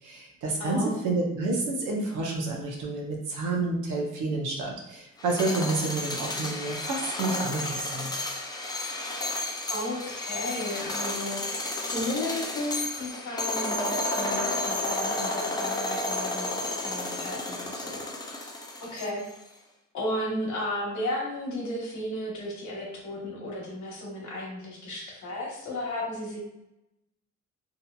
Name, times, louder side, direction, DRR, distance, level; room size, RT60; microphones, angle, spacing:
voice 1, 0.0-8.2, right 3 dB, 80° right, -1 dB, 0.8 m, -29 dB
voice 2, 0.6-1.0 9.7-18.4 18.8-19.2 19.9-26.4, left 1 dB, 75° left, -2 dB, 1.1 m, -34 dB
sound 1, 5.2-19.3, left 2 dB, 15° left, 0.4 m, -32 dB
2.8 x 2.7 x 2.2 m, 0.87 s
cardioid pair, 90°, 30 cm